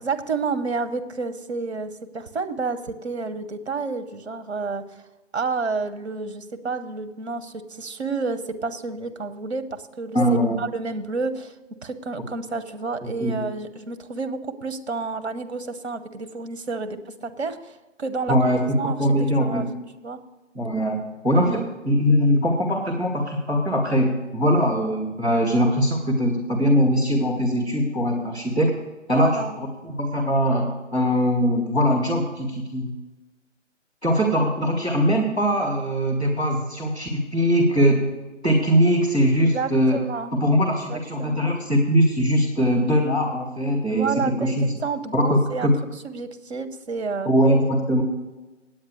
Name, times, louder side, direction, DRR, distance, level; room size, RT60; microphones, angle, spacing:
voice 1, 0.0-5.1 5.3-10.2 10.6-11.5 11.8-18.4 18.8-19.0 19.4-19.7 20.0-20.2 21.4-21.7 29.1-29.6 39.5-40.3 40.9-41.5 43.9-45.7 46.0-47.3, right 4 dB, 60° right, 8 dB, 1.1 m, -30 dB
voice 2, 10.1-10.6 13.2-13.4 18.3-19.7 20.5-28.7 29.1-32.9 34.0-38.1 38.4-40.0 40.3-44.7 45.1-45.7 47.2-48.0, equal, 5° left, -14 dB, 0.6 m, -21 dB
9.1 x 8.5 x 6.6 m, 1.1 s
figure-of-eight pair, 145°, 37 cm